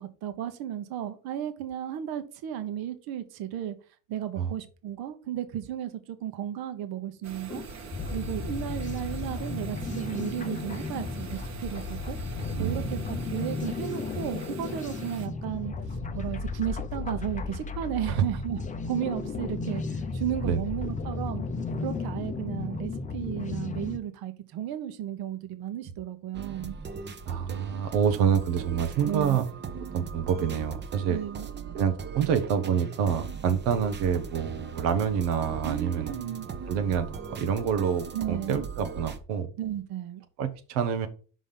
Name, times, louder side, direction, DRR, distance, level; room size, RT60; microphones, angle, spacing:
voice 1, 0.0-3.8 4.1-7.6 8.1-12.2 12.6-18.6 18.8-21.4 21.8-26.7 29.0-29.4 31.1-31.5 35.6-36.5 38.1-38.7 39.6-40.2, right 11 dB, 60° right, 1.2 m, -34 dB
sound 1, 7.2-15.3, right 6 dB, 40° right, 1.2 m, -44 dB
sound 2, 7.5-24.0, left 4 dB, 20° left, 0.6 m, -34 dB
voice 2, 12.6-12.9 18.1-18.2 20.4-20.6 27.3-29.4 29.9-31.2 31.7-36.1 36.7-39.5 40.4-41.1, right 7 dB, 85° right, 1.0 m, -27 dB
sound 3, 26.3-39.2, right 6 dB, 25° right, 0.8 m, -39 dB
5.6 x 5.1 x 5.6 m
cardioid pair, 120°, 41 cm